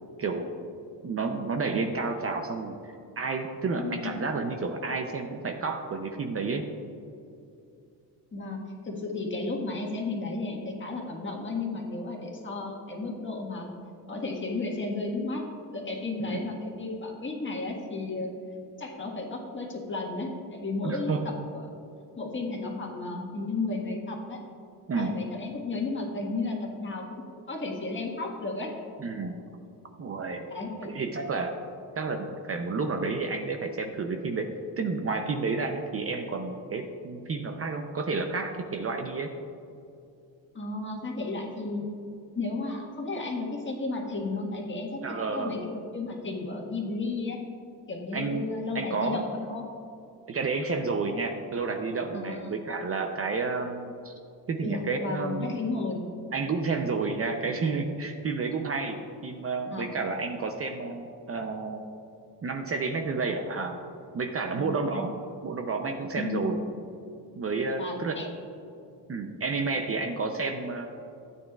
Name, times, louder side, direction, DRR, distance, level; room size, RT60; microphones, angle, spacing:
voice 1, 0.2-0.6 1.0-2.8 3.2-6.6 16.2-16.4 20.8-21.2 24.9-25.1 29.0-29.4 30.0-30.5 30.8-31.5 32.0-34.5 34.8-39.3 45.0-45.5 48.1-48.5 48.7-49.2 50.3-54.1 54.5-55.5 56.3-61.8 62.4-63.8 64.1-65.1 65.4-66.6 67.3-68.2 69.1-70.9, right 4 dB, 35° right, 4 dB, 0.6 m, -30 dB
voice 2, 3.8-4.2 8.3-13.7 14.1-15.4 15.7-18.3 18.8-21.7 22.1-24.4 24.9-28.8 30.5-30.9 40.5-41.8 42.3-45.0 45.3-47.4 47.9-49.7 52.1-52.5 54.6-56.0 59.7-59.9 61.3-61.4 64.5-65.0 66.2-66.6 67.8-68.3, left 3 dB, 30° left, -1 dB, 1.6 m, -33 dB
13.5 x 9.1 x 2.4 m, 2.6 s
cardioid pair, 120°, 41 cm